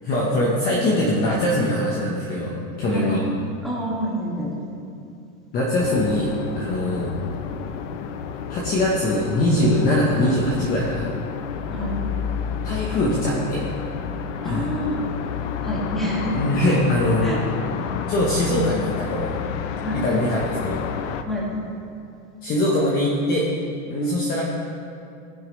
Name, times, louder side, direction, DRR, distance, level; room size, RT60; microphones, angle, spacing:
voice 1, 0.0-3.2 5.5-7.1 8.5-11.1 12.6-13.6 14.4-14.7 16.2-17.4 18.1-19.3 19.9-20.8 22.4-23.5 23.9-24.4, left 1 dB, 20° left, -4 dB, 1.1 m, -22 dB
voice 2, 3.6-4.7 11.7-11.9 14.4-15.1 15.6-16.3 16.7-16.8 17.2-17.4 19.8-20.0 21.2-21.5, equal, ahead, -6 dB, 2.0 m, -28 dB
sound 1, 5.8-21.2, left 7 dB, 60° left, 0.8 m, -30 dB
18.5 x 10.5 x 3.2 m, 2.5 s
supercardioid pair, 170°, 41 cm